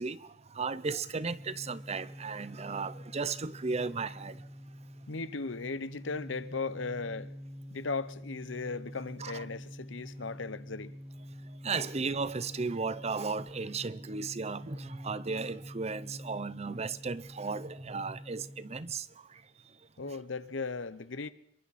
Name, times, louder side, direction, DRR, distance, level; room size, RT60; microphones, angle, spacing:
voice 1, 0.0-4.4 9.2-9.4 11.6-19.1 20.1-20.2, right 4 dB, 35° right, 0.7 m, -35 dB
sound 1, 0.7-19.0, equal, 10° right, 1.6 m, -47 dB
voice 2, 5.1-7.3 7.7-10.9 20.0-21.3, left 4 dB, 90° left, 1.0 m, -37 dB
26.5 x 23.0 x 4.3 m
head